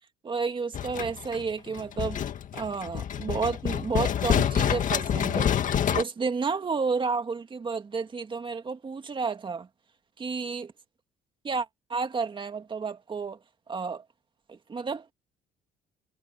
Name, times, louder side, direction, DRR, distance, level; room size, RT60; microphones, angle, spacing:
voice 1, 0.2-2.2 2.5-9.7 10.2-10.7 11.4-13.4 13.7-14.0 14.5-15.1, right 5 dB, 30° right, 2.1 m, -31 dB
sound 1, 0.7-6.0, left 9 dB, 50° left, 2.1 m, -27 dB
cardioid pair, 110°, 17 cm